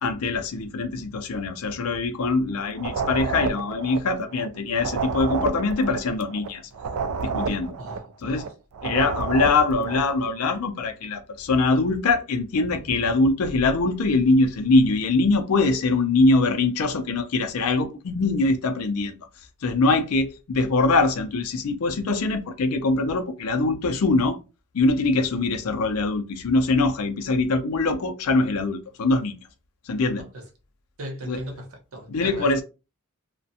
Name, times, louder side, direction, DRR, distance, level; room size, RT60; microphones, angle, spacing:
voice 1, 0.0-6.6 7.2-7.7 8.2-8.5 8.8-19.1 19.6-24.4 24.7-29.3 29.9-30.2 31.3-31.4 32.1-32.6, left 3 dB, 70° left, 0.5 m, -23 dB
sound 1, 2.7-4.5 4.7-8.5 8.7-10.1, right 5 dB, 90° right, 0.3 m, -30 dB
voice 2, 7.8-8.1 30.2-30.4 31.0-32.6, right 1 dB, 65° right, 0.8 m, -38 dB
2.4 x 2.1 x 2.6 m
head